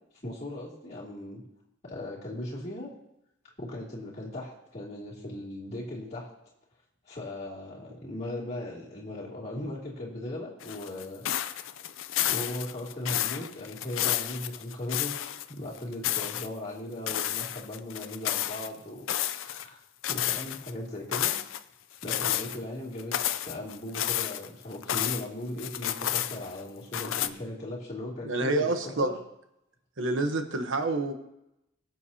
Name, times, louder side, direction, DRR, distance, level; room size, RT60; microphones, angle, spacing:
voice 1, 0.2-1.4 1.8-2.9 3.6-6.3 7.0-11.6 12.3-15.1 15.5-19.8 20.1-21.3 22.0-23.1 23.4-29.1, left 1 dB, 35° left, -8 dB, 2.8 m, -38 dB
sound 1, 10.6-15.5 15.8-16.5 17.1-18.7 19.1-19.7 20.0-20.7 21.1-21.6 22.0-22.6 23.0-25.3 25.6-26.6 26.9-27.3, left 12 dB, 90° left, 0.5 m, -31 dB
voice 2, 28.2-29.1 30.0-31.1, right 2 dB, 75° right, 7 dB, 1.1 m, -27 dB
21.5 x 7.9 x 2.9 m, 0.84 s
head